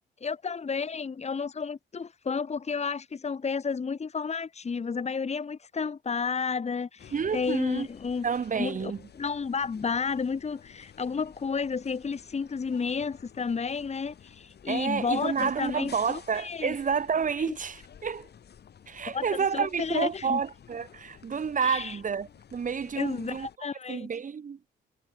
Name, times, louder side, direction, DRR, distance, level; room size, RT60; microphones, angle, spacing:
voice 1, 0.2-8.2 8.6-16.8 17.5-17.6 19.1-20.4 21.6-22.0 23.0-24.1, left 5 dB, 35° left, 2.0 m, -32 dB
sound 1, 7.0-23.6, left 8 dB, 55° left, 6.1 m, -53 dB
voice 2, 7.1-7.9 8.2-9.0 14.7-18.3 18.9-23.5 23.9-24.6, right 6 dB, 40° right, 2.1 m, -30 dB
cardioid pair, 90°, 20 cm